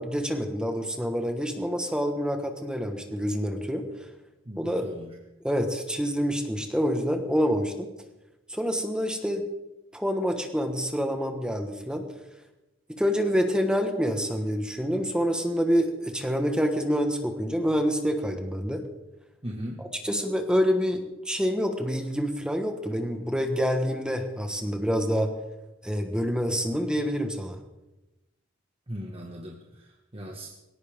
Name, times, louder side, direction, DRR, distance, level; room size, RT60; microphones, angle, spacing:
voice 1, 0.0-3.8 4.6-4.8 5.4-7.9 8.5-9.4 9.9-12.0 13.0-18.8 19.8-25.3 25.8-27.6, equal, 5° right, 5 dB, 1.4 m, -27 dB
voice 2, 4.4-5.1 19.4-19.8 28.9-30.5, equal, 30° right, 0 dB, 1.7 m, -38 dB
20.0 x 17.5 x 3.7 m, 0.99 s
head